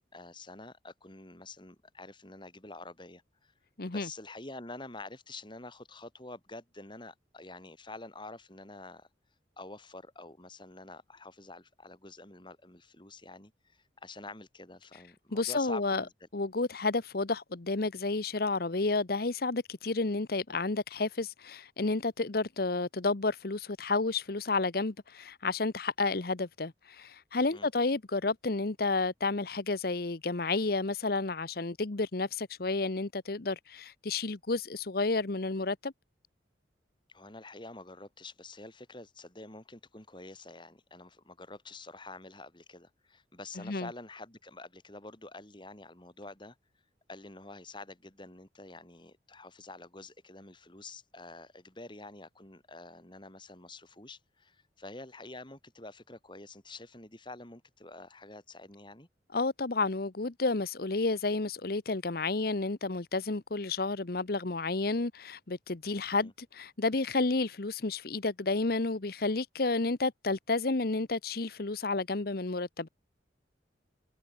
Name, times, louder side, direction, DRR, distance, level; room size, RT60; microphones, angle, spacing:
voice 1, 0.0-3.5 3.8-9.1 9.6-16.3 27.5-27.7 37.1-46.6 47.1-59.1 66.2-66.3, left 2 dB, 25° left, 4.1 m, -48 dB
voice 2, 3.8-4.1 14.9-15.0 15.3-16.0 16.3-35.9 43.6-43.9 59.3-72.9, left 3 dB, 55° left, 1.0 m, -31 dB
head